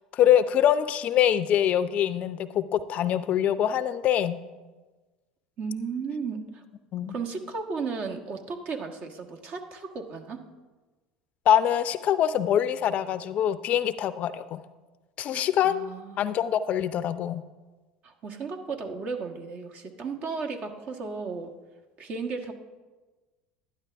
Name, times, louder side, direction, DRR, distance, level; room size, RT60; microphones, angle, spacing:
voice 1, 0.1-4.4 6.9-7.2 11.5-14.6 15.2-17.4, left 10 dB, 50° left, 14 dB, 0.5 m, -24 dB
voice 2, 5.6-6.6 7.1-10.4 15.3-16.2 18.0-21.5 22.0-22.5, right 4 dB, 50° right, 3 dB, 1.4 m, -34 dB
12.0 x 10.5 x 3.4 m, 1.3 s
hypercardioid pair, 80°, 3 cm